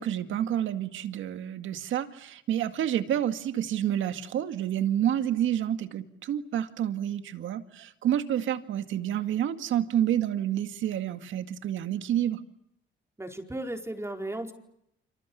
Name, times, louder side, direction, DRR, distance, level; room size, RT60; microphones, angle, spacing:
voice 1, 0.0-12.4, right 10 dB, 80° right, 9 dB, 2.1 m, -29 dB
voice 2, 13.2-14.5, right 1 dB, 15° right, 4 dB, 4.5 m, -35 dB
29.0 x 26.5 x 7.1 m, 0.79 s
cardioid pair, 90°, 20 cm